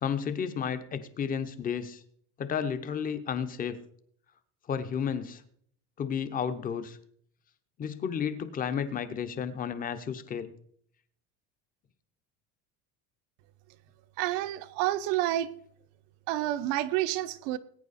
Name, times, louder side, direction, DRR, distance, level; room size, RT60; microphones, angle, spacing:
voice 1, 0.0-2.0 2.4-3.8 4.7-5.4 6.0-7.0 7.8-10.5, left 7 dB, 25° left, 11 dB, 0.9 m, -32 dB
voice 2, 14.2-15.5 16.3-17.6, right 14 dB, 75° right, 11 dB, 1.0 m, -29 dB
20.0 x 9.4 x 4.2 m, 0.64 s
cardioid pair, 180°, 35 cm